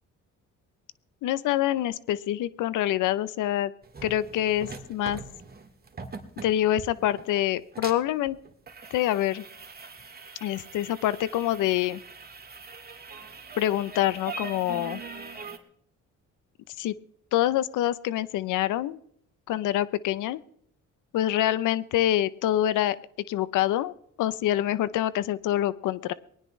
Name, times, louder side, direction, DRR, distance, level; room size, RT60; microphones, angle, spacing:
voice 1, 1.2-3.7 4.0-5.2 6.4-8.4 8.9-9.4 10.4-12.0 13.6-15.0 16.8-16.9 17.3-19.0 19.5-20.4 21.1-23.0 23.3-26.1, left 13 dB, 85° left, 17 dB, 0.7 m, -26 dB
sound 1, 3.8-15.6, right 4 dB, 30° right, 2.0 m, -42 dB
20.5 x 18.0 x 3.2 m, 0.68 s
cardioid pair, 90°, 30 cm